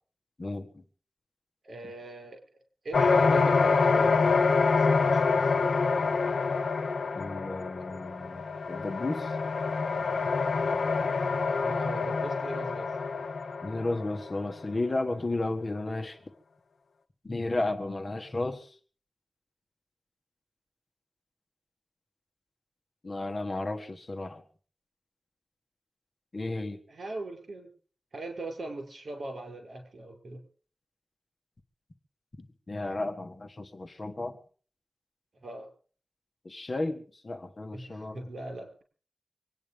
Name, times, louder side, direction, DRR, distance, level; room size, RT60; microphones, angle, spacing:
voice 1, 0.4-0.8 7.1-9.4 13.6-16.2 17.2-18.7 23.0-24.4 26.3-26.8 32.4-34.4 36.4-38.2, left 2 dB, 40° left, 6 dB, 1.7 m, -33 dB
voice 2, 1.6-2.4 2.8-4.1 4.7-5.5 11.6-12.9 26.9-27.7 28.1-30.5 35.4-35.7 37.7-38.8, right 2 dB, 65° right, 4 dB, 5.9 m, -39 dB
sound 1, 2.9-14.4, left 4 dB, 75° left, 0.9 m, -26 dB
25.0 x 9.8 x 5.3 m, 0.43 s
wide cardioid pair, 90°, 0 cm